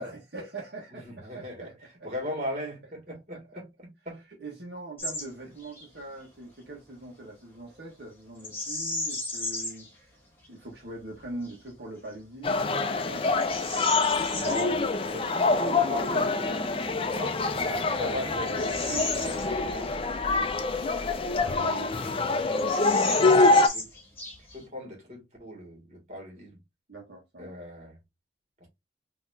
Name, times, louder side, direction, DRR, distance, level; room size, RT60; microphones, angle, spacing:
voice 1, 0.0-2.1 3.1-3.4 4.4-9.8 10.5-13.4 15.5-15.6 17.6-18.0 26.9-27.5, right 2 dB, 70° right, 1.3 m, -42 dB
voice 2, 0.9-1.7 2.0-4.2 14.4-17.4 18.0-19.9 20.3-20.7 21.4-23.4 23.7-23.9 24.5-26.6 27.4-28.0 28.6-28.7, equal, 40° right, 2.0 m, -39 dB
Bird vocalization bird call bird song, 5.0-5.3 5.6-5.9 8.4-9.9 10.4-10.5 11.2-11.6 12.1-12.2 12.8-14.7 16.8-16.9 17.5-20.0 20.3-20.4 21.1-21.9 22.2-22.3 22.5-24.7, left 2 dB, 15° left, 1.6 m, -35 dB
sound 1, 12.4-23.7, left 3 dB, 30° left, 0.4 m, -25 dB
sound 2, 15.5-21.6, equal, 10° right, 0.9 m, -42 dB
4.1 x 2.9 x 2.6 m
head